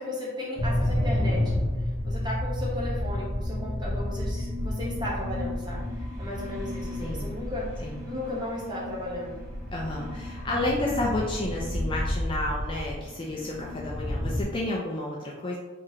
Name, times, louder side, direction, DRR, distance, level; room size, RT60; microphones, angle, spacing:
voice 1, 0.0-1.6 2.0-5.8 6.2-7.7 8.0-9.4, left 1 dB, 20° right, -5 dB, 0.8 m, -35 dB
sound 1, 0.6-14.4, left 1 dB, 55° right, 1.2 m, -31 dB
voice 2, 7.0-7.3 7.8-8.0 9.7-15.6, left 2 dB, 25° left, -3 dB, 0.3 m, -31 dB
2.8 x 2.5 x 4.0 m, 1.2 s
head